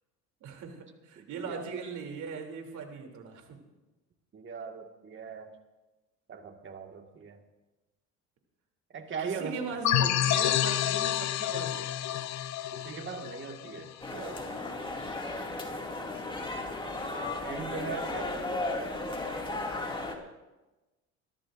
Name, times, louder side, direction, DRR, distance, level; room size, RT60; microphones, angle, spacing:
voice 1, 0.4-3.6 9.2-12.2, right 5 dB, 60° right, 2 dB, 3.1 m, -39 dB
voice 2, 1.2-1.7 4.3-5.5 6.3-7.4 8.9-9.8 12.7-14.4 17.1-18.6, right 5 dB, 35° right, 4 dB, 1.8 m, -40 dB
sound 1, 9.8-14.3, left 12 dB, 55° left, 0.7 m, -29 dB
sound 2, 14.0-20.2, left 2 dB, 15° left, 2.3 m, -35 dB
29.0 x 13.5 x 2.6 m, 1.1 s
supercardioid pair, 95°, 33 cm